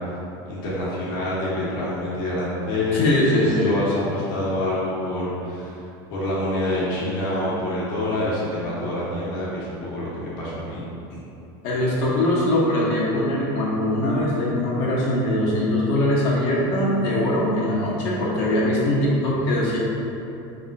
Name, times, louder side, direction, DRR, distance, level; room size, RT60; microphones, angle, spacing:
voice 1, 0.5-3.1 3.4-5.8 6.1-10.8 11.1-11.2, left 1 dB, 80° left, -8 dB, 1.3 m, -27 dB
voice 2, 2.9-3.8 11.6-19.8, left 1 dB, 55° left, -5 dB, 1.0 m, -21 dB
5.1 x 3.5 x 2.5 m, 2.8 s
cardioid pair, 160°, 12 cm